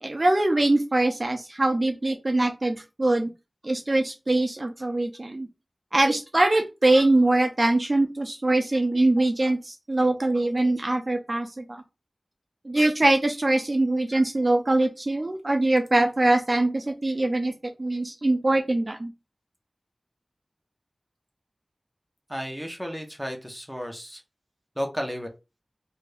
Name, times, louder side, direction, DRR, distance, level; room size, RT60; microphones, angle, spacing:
voice 1, 0.0-3.3 3.6-5.5 5.9-11.8 12.6-17.5 17.8-19.1, right 2 dB, 45° right, 4 dB, 0.4 m, -23 dB
voice 2, 22.3-24.2 24.8-25.3, equal, ahead, 3 dB, 0.8 m, -33 dB
2.7 x 2.5 x 3.3 m, 0.27 s
wide cardioid pair, 65°, 0 cm